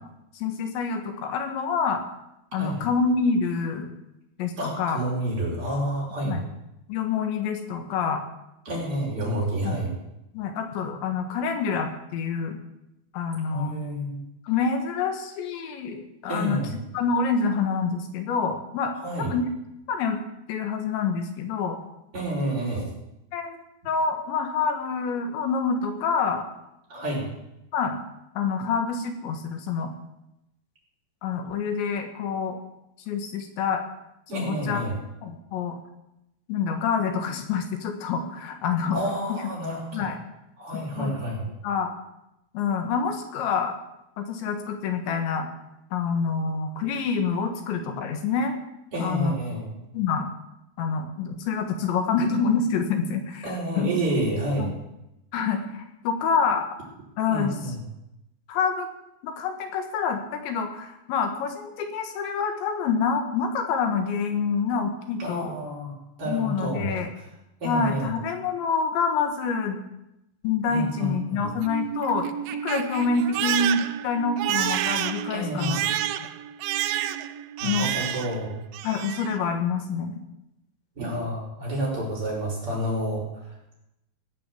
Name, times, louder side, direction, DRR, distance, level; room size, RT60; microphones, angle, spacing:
voice 1, 0.3-2.0 2.5-3.9 4.4-5.0 6.3-6.4 6.9-8.3 9.6-9.8 10.3-12.6 13.1-13.8 14.5-16.6 16.9-18.9 19.2-19.5 19.9-20.2 20.5-21.8 23.3-23.6 23.9-26.5 27.7-28.0 28.4-29.9 31.2-32.6 33.1-33.8 34.3-34.8 35.2-35.8 36.5-39.0 39.3-39.4 39.9-40.3 41.0-41.1 41.6-41.9 42.5-43.8 44.2-45.5 45.9-48.6 49.0-49.4 49.9-50.3 50.8-53.5 53.8-53.9 54.6-54.7 55.3-56.7 57.2-57.6 58.5-58.9 59.2-65.5 66.3-67.1 67.6-69.8 70.4-72.3 72.6-75.8 77.6-77.9 78.8-80.2, left 5 dB, 85° left, 6 dB, 3.8 m, -27 dB
voice 2, 4.6-6.4 8.6-9.9 13.5-14.2 16.3-16.8 19.0-19.3 22.1-22.8 26.9-27.3 34.3-34.9 38.9-40.1 40.6-41.4 48.9-49.7 53.4-54.7 57.3-57.8 65.2-67.0 67.6-68.1 70.7-71.5 75.3-75.9 77.6-78.6 81.0-83.4, right 1 dB, 30° right, -4 dB, 6.5 m, -29 dB
Crying sobbing, 71.4-78.4 78.7-79.4, right 11 dB, 85° right, 2.1 m, -29 dB
18.0 x 7.8 x 8.5 m, 0.88 s
omnidirectional pair, 5.1 m